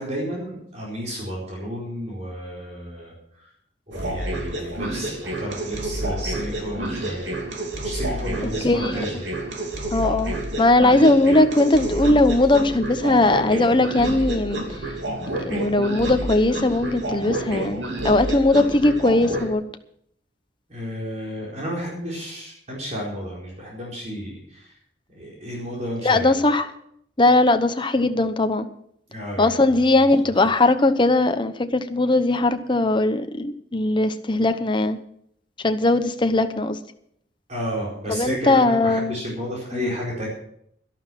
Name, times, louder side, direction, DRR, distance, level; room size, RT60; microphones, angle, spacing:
voice 1, 0.0-3.5 3.9-7.4 7.8-9.2 20.7-24.8 25.1-26.4 29.1-29.6 37.5-40.3, equal, 40° right, -4 dB, 4.5 m, -32 dB
sound 1, 3.9-19.5, right 1 dB, 85° right, 2.8 m, -29 dB
voice 2, 9.9-14.6 15.4-17.8 18.0-19.6 26.0-26.7 27.2-28.7 29.4-35.0 35.6-36.8 38.1-39.2 39.8-39.9, left 2 dB, 25° left, 8 dB, 0.9 m, -19 dB
12.0 x 12.0 x 6.1 m, 0.70 s
head